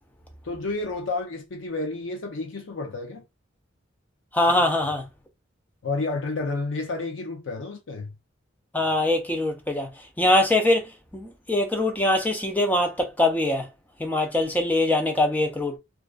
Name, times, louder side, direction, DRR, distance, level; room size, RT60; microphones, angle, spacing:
voice 1, 0.4-3.2 5.8-8.1, left 3 dB, 65° left, 0.5 m, -30 dB
voice 2, 4.3-5.0 8.7-9.9 10.2-10.9 11.1-13.7 14.0-15.8, left 1 dB, 10° left, 0.4 m, -22 dB
2.3 x 2.3 x 2.3 m
head